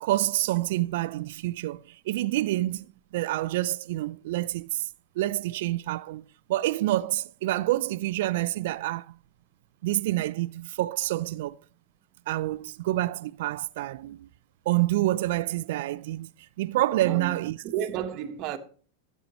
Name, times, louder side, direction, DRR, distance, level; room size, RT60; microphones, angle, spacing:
voice 1, 0.0-1.8 2.1-2.9 3.1-4.9 5.2-6.2 6.5-9.1 9.8-11.6 12.3-14.3 14.7-16.3 16.6-17.6, right 16 dB, 65° right, 0.3 m, -27 dB
voice 2, 17.0-18.6, right 10 dB, 50° right, 1.2 m, -32 dB
12.5 x 9.1 x 3.0 m
hypercardioid pair, 105°, 0 cm